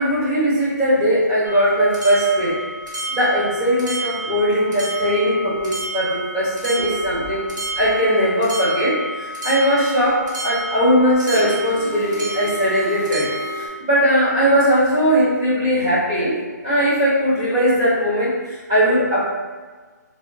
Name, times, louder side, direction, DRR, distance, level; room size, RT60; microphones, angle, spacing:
voice 1, 0.0-2.6 3.1-7.5 7.7-13.3 13.6-16.3 16.6-19.3, equal, 15° right, -10 dB, 0.9 m, -19 dB
sound 1, 1.4-13.7, right 1 dB, 70° right, 1.0 m, -30 dB
3.5 x 3.0 x 2.6 m, 1.4 s
hypercardioid pair, 175°, 10 cm